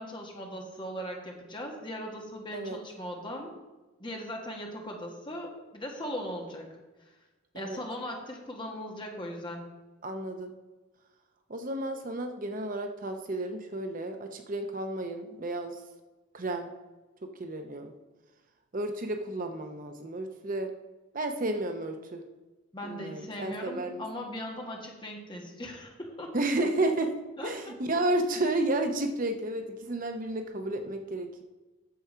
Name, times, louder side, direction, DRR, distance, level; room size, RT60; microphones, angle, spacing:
voice 1, 0.0-3.5 4.0-6.7 7.5-9.6 22.7-26.4 27.4-27.5, equal, 20° left, 0 dB, 1.6 m, -39 dB
voice 2, 10.0-10.5 11.5-15.8 16.3-16.7 17.4-17.9 18.7-20.7 21.1-22.2 22.8-24.0 26.3-27.2 27.4-31.4, right 2 dB, 40° right, 6 dB, 0.7 m, -32 dB
9.5 x 7.0 x 5.6 m, 1.2 s
head